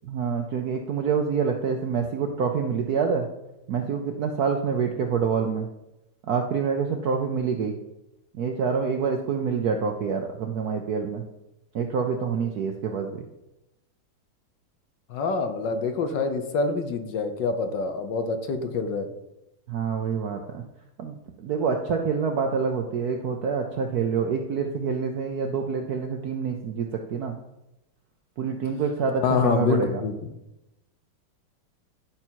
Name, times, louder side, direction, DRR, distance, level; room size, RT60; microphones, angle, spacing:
voice 1, 0.0-3.3 3.7-5.7 6.3-7.8 8.4-11.2 11.7-13.2 19.7-20.6 21.0-27.4 28.4-30.0, right 6 dB, 70° right, 4 dB, 0.9 m, -27 dB
voice 2, 15.1-19.1 29.2-30.3, left 4 dB, 65° left, 7 dB, 1.4 m, -26 dB
11.0 x 5.5 x 4.5 m, 0.92 s
omnidirectional pair, 2.4 m